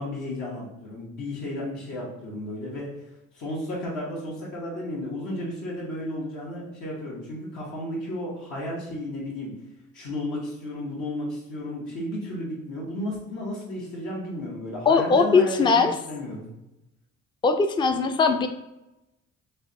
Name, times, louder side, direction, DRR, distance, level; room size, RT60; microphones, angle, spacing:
voice 1, 0.0-2.9 3.3-9.5 9.9-16.5, left 1 dB, 75° left, -5 dB, 1.2 m, -33 dB
voice 2, 14.9-15.9 17.4-18.5, left 4 dB, 15° left, 8 dB, 0.3 m, -20 dB
6.6 x 2.2 x 2.7 m, 0.93 s
cardioid pair, 90°, 30 cm